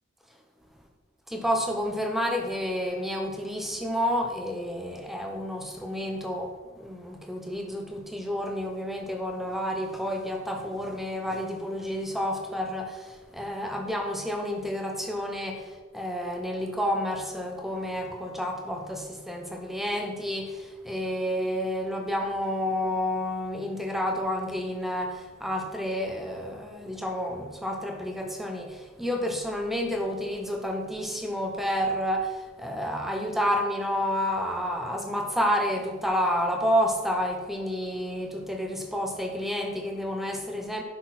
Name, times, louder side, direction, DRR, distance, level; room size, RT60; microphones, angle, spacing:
voice 1, 1.3-40.8, equal, ahead, 3 dB, 0.7 m, -30 dB
10.0 x 6.0 x 4.2 m, 1.4 s
head